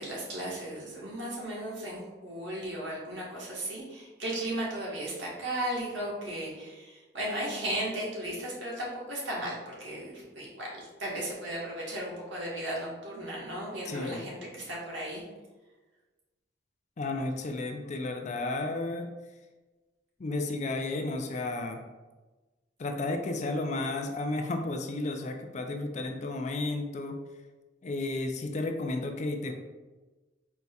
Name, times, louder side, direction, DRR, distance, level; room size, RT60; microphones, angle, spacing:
voice 1, 0.0-15.2, right 1 dB, 80° right, -5 dB, 1.4 m, -35 dB
voice 2, 13.8-14.3 17.0-19.1 20.2-21.8 22.8-27.2 27.8-29.5, left 2 dB, 40° left, 5 dB, 0.4 m, -32 dB
4.6 x 4.0 x 2.3 m, 1.2 s
head